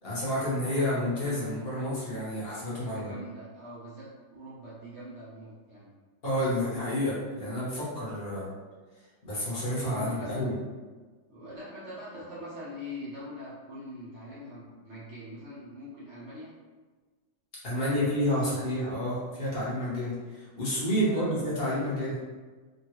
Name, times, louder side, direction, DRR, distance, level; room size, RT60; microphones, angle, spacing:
voice 1, 0.0-3.1 6.2-8.5 9.2-10.5 17.6-22.2, equal, 45° left, -8 dB, 0.8 m, -30 dB
voice 2, 2.7-5.9 9.7-10.5 11.3-16.5 17.7-18.4 21.0-21.4, left 1 dB, 75° right, -7 dB, 0.6 m, -43 dB
3.1 x 2.2 x 2.9 m, 1.4 s
omnidirectional pair, 2.0 m